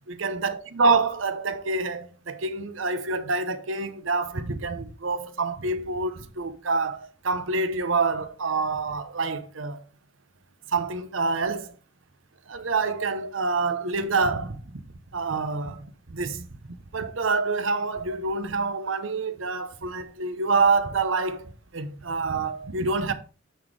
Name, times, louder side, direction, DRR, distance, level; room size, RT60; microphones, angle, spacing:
voice 1, 0.1-9.8 10.7-11.7 12.5-14.6 15.1-16.5 16.9-23.1, right 4 dB, 75° right, 0.9 m, -27 dB
9.3 x 4.3 x 4.8 m
head